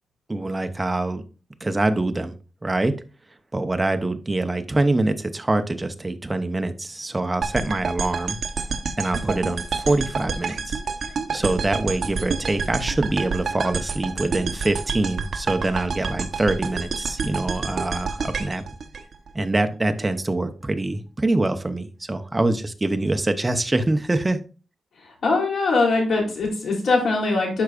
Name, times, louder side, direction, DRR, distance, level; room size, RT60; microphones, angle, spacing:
voice 1, 0.3-1.2 1.6-2.3 2.6-2.9 3.5-8.4 9.0-10.8 11.3-18.6 19.3-24.4, right 2 dB, 15° right, 8 dB, 0.7 m, -24 dB
sound 1, 7.4-19.6, right 5 dB, 55° right, 0.9 m, -29 dB
voice 2, 25.0-27.6, left 3 dB, 70° left, -1 dB, 3.3 m, -22 dB
11.5 x 4.7 x 2.4 m, 0.34 s
wide cardioid pair, 145°, 0 cm